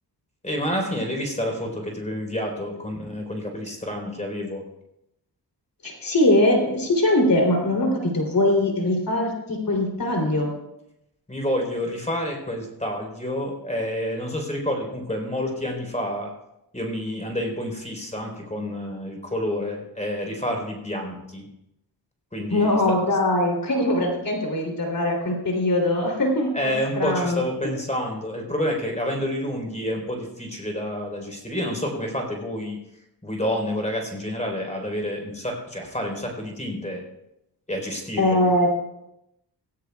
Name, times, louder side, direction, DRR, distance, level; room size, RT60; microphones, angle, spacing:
voice 1, 0.4-4.6 11.3-16.3 16.7-21.5 22.3-22.8 26.5-32.8 33.2-37.0 37.7-38.4, left 1 dB, 15° left, 2 dB, 3.8 m, -29 dB
voice 2, 5.8-10.5 22.5-27.4 38.2-38.7, left 1 dB, 55° left, 1 dB, 3.1 m, -22 dB
17.0 x 16.5 x 2.3 m, 0.84 s
cardioid pair, 75°, 40 cm